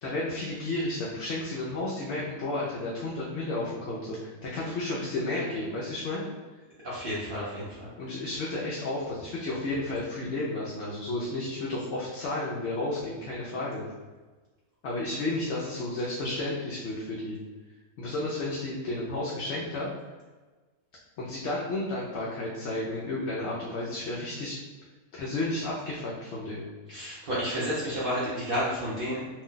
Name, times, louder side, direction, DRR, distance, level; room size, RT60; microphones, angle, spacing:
voice 1, 0.0-6.2 8.0-13.8 14.8-17.4 18.0-19.9 21.2-24.6 25.1-26.7, left 2 dB, 65° left, -5 dB, 0.8 m, -32 dB
voice 2, 6.8-7.9 26.9-29.3, equal, 55° right, -8 dB, 0.7 m, -31 dB
2.6 x 2.1 x 3.7 m, 1.3 s
omnidirectional pair, 1.4 m